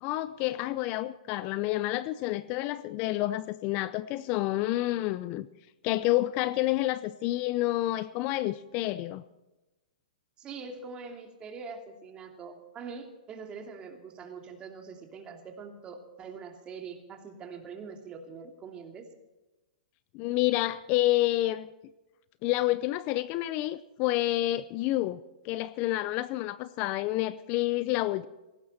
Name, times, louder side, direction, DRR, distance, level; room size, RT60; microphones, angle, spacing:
voice 1, 0.0-5.5 5.8-9.2 20.1-21.7 22.4-25.2 25.4-28.3, left 16 dB, 35° left, 16 dB, 0.6 m, -29 dB
voice 2, 10.4-19.1, right 5 dB, 20° right, 4 dB, 2.7 m, -43 dB
18.0 x 15.5 x 4.2 m, 1.1 s
hypercardioid pair, 135°, 4 cm